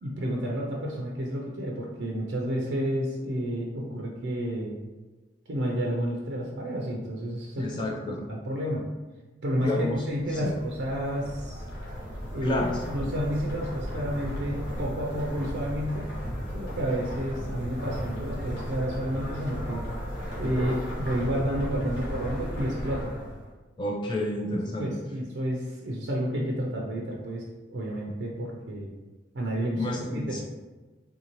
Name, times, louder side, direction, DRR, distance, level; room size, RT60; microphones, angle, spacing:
voice 1, 0.0-4.8 5.5-8.8 9.4-11.6 12.3-16.1 16.5-19.9 20.4-23.1 24.5-28.9 29.3-30.4, equal, 75° right, -2 dB, 0.5 m, -30 dB
voice 2, 7.6-8.2 9.6-10.0 10.3-10.5 12.4-12.8 23.8-24.9 29.8-30.4, left 1 dB, 25° left, -1 dB, 0.3 m, -30 dB
sound 1, 10.0-23.5, equal, 90° left, 1.4 m, -35 dB
3.6 x 2.6 x 3.0 m, 1.2 s
head